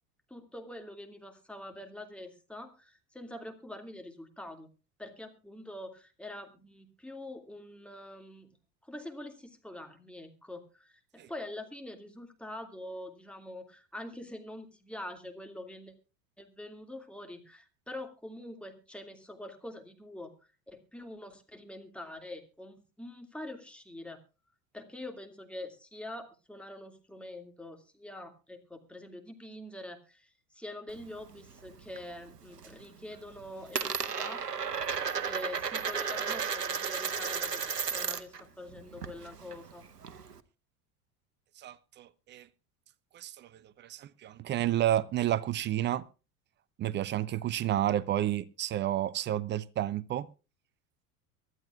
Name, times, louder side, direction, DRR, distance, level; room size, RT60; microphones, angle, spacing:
voice 1, 0.3-4.7 5.0-8.5 8.8-15.9 16.4-20.3 20.7-24.2 24.7-34.4 35.3-39.9, left 1 dB, ahead, 2.2 m, -45 dB
Coin (dropping), 30.9-32.0 32.4-32.9 33.1-38.4 38.7-40.4, right 6 dB, 85° right, 0.9 m, -34 dB
voice 2, 41.6-42.5 43.1-46.1 46.8-50.3, right 12 dB, 25° right, 0.6 m, -31 dB
23.5 x 12.5 x 2.4 m
figure-of-eight pair, 75°, 47 cm